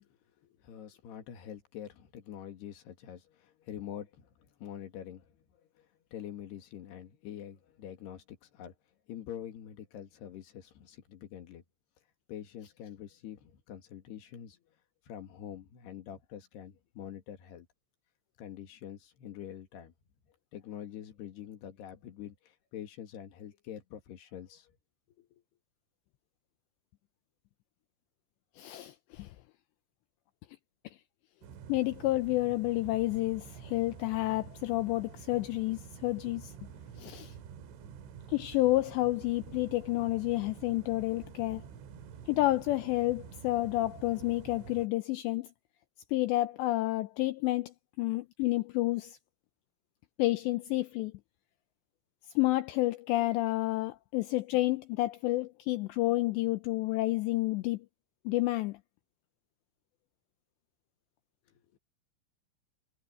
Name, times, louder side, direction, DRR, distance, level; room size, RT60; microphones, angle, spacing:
voice 1, 0.0-8.8 9.1-11.6 12.3-14.6 15.1-17.7 18.4-19.9 20.5-24.7 25.1-25.4 61.5-61.8, left 10 dB, 60° left, 3.8 m, -46 dB
voice 2, 28.6-29.3 31.7-36.5 37.0-37.3 38.3-41.6 42.3-45.5 46.1-49.2 50.2-51.1 52.4-57.9 58.3-58.8, left 18 dB, 90° left, 2.5 m, -30 dB
sound 1, 31.4-44.9, right 7 dB, 75° right, 4.6 m, -48 dB
omnidirectional pair, 5.8 m